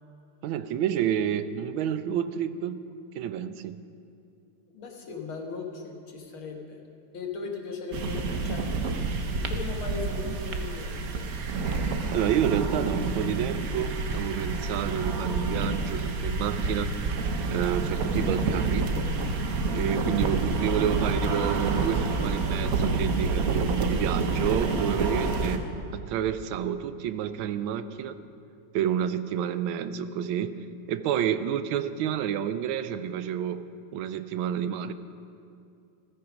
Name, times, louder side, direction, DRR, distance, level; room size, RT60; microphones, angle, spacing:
voice 1, 0.4-2.8 3.2-3.8 12.1-16.9 17.5-18.9 19.7-25.6 25.9-28.2 28.7-30.6 30.9-33.6 33.9-34.9, right 9 dB, 75° right, 12 dB, 1.4 m, -29 dB
voice 2, 4.7-6.8 7.1-8.7 9.3-11.3, left 4 dB, 75° left, 2 dB, 2.4 m, -38 dB
sound 1, 7.9-25.6, right 3 dB, 55° right, 1.2 m, -28 dB
14.5 x 14.5 x 5.1 m, 2.6 s
omnidirectional pair, 2.3 m